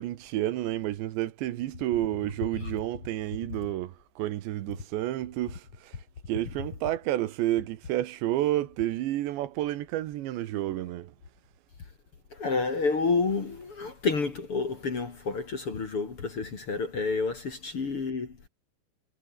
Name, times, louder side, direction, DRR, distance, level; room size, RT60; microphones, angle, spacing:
voice 1, 0.0-6.0 6.3-11.1, right 14 dB, 80° right, 3.6 m, -30 dB
voice 2, 12.3-18.4, left 4 dB, 35° left, 3.0 m, -29 dB
omnidirectional pair, 5.1 m